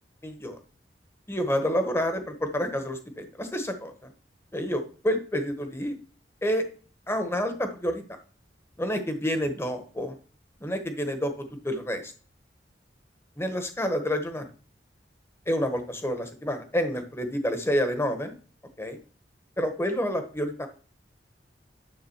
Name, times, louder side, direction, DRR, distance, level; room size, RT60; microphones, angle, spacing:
voice 1, 0.2-0.6 1.3-3.9 4.5-6.0 6.4-6.6 7.1-8.0 8.8-10.1 10.6-12.1 13.4-14.4 15.5-18.3 18.8-19.0 19.6-20.7, equal, 15° left, 6 dB, 1.1 m, -28 dB
10.0 x 3.5 x 7.1 m, 0.40 s
head